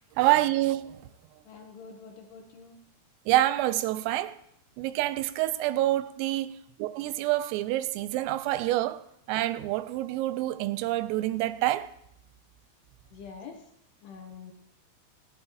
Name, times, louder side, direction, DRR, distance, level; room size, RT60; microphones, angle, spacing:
voice 1, 0.2-1.0 3.3-4.4 4.8-9.0 9.3-11.9, right 15 dB, 90° right, 3.3 m, -27 dB
voice 2, 1.4-2.8 13.1-13.6 14.0-14.5, left 5 dB, 70° left, 2.6 m, -46 dB
27.5 x 9.7 x 3.0 m
omnidirectional pair, 5.9 m